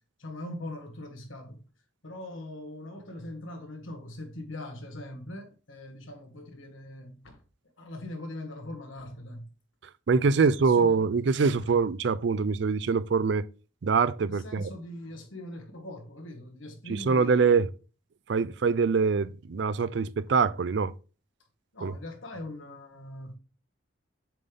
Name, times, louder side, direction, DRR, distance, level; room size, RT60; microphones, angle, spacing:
voice 1, 0.2-1.6 2.0-7.4 7.6-9.5 10.3-11.0 11.6-11.8 14.3-17.6 21.7-23.4, left 1 dB, 85° left, 1.6 m, -41 dB
voice 2, 10.1-13.4 13.8-14.6 17.1-17.7 18.3-20.9 21.8-21.9, right 5 dB, 60° right, 0.4 m, -24 dB
7.6 x 3.5 x 3.8 m
head